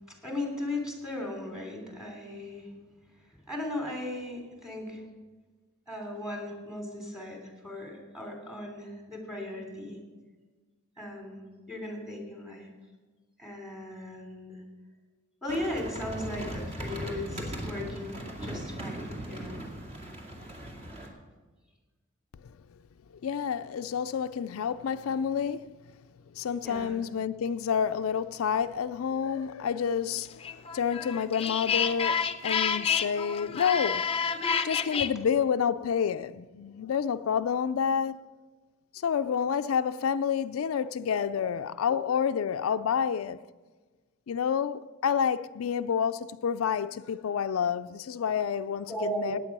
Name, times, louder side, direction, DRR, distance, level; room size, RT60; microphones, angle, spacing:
voice 1, 0.1-2.7 3.3-5.0 5.9-10.0 11.0-12.7 13.4-14.6 15.4-19.6 26.6-27.0 34.4-34.5 34.9-35.1 41.3-41.5 41.9-42.0 48.9-49.4, left 1 dB, 5° right, 3.0 m, -37 dB
sound 1, 15.5-21.1, equal, 30° right, 2.3 m, -38 dB
voice 2, 23.2-25.8 26.4-34.0 34.6-38.3 38.9-43.4 44.3-49.4, left 7 dB, 90° left, 0.4 m, -29 dB
sound 2, 30.4-35.1, left 6 dB, 30° left, 0.6 m, -29 dB
17.0 x 9.0 x 6.0 m
head